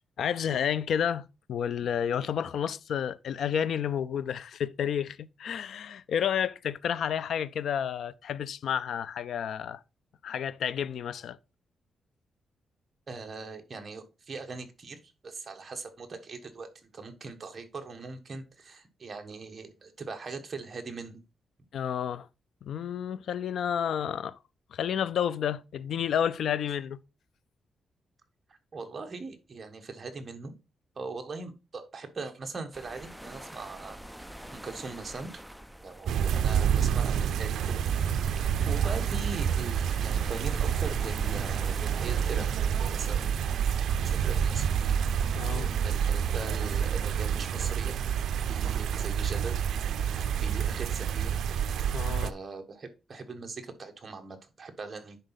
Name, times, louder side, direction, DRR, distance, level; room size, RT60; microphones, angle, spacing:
voice 1, 0.2-9.8 10.2-11.4 21.7-22.3 22.6-24.4 24.7-27.0 45.3-45.7 51.9-52.3, left 8 dB, 70° left, 0.4 m, -30 dB
voice 2, 13.1-21.2 28.7-30.5 31.0-34.0 34.5-35.5 35.8-37.8 38.3-43.4 43.8-45.0 45.4-48.0 48.4-49.6 50.3-51.4 52.2-55.2, right 4 dB, 30° right, 1.2 m, -41 dB
sound 1, 32.7-46.9, equal, ahead, 0.4 m, -45 dB
sound 2, 36.1-52.3, right 8 dB, 80° right, 0.4 m, -28 dB
10.0 x 4.0 x 4.0 m
wide cardioid pair, 160°, 0 cm